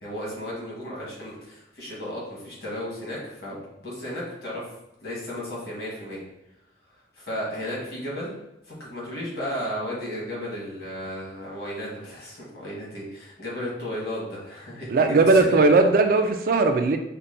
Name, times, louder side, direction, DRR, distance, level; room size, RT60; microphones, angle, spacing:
voice 1, 0.0-4.6 5.0-6.2 7.1-8.3 8.6-15.5 15.8-15.9, equal, 55° left, -5 dB, 1.3 m, -34 dB
voice 2, 14.9-17.0, right 3 dB, 50° right, 7 dB, 0.3 m, -18 dB
5.4 x 2.2 x 2.6 m, 0.86 s
head